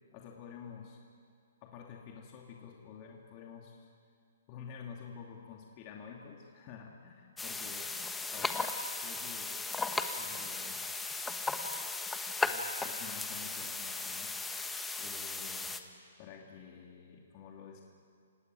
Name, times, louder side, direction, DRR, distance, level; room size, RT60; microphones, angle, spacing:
voice 1, 0.1-1.0 1.6-3.9 4.5-7.9 8.3-8.6 9.0-9.7 10.1-10.9 12.4-14.4 15.0-15.8 16.2-17.8, left 6 dB, 35° left, 0 dB, 2.6 m, -49 dB
sound 1, 7.4-15.8, left 3 dB, 5° left, 1.2 m, -36 dB
28.5 x 17.0 x 9.3 m, 2.3 s
hypercardioid pair, 140°, 0 cm